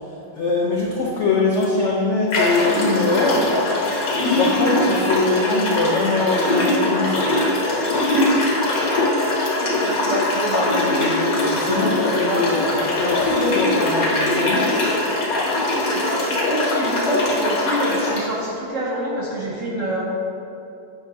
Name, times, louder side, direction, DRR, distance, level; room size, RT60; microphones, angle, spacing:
voice 1, 0.3-3.5 4.4-7.3 11.5-12.6 12.9-14.8, left 3 dB, 70° left, -3 dB, 0.6 m, -22 dB
sound 1, 1.5-1.7 2.3-18.2, left 1 dB, 55° left, 1.5 m, -21 dB
voice 2, 9.6-12.4 15.9-20.0, equal, 55° right, -5 dB, 0.9 m, -27 dB
8.4 x 5.8 x 2.6 m, 2.7 s
omnidirectional pair, 2.1 m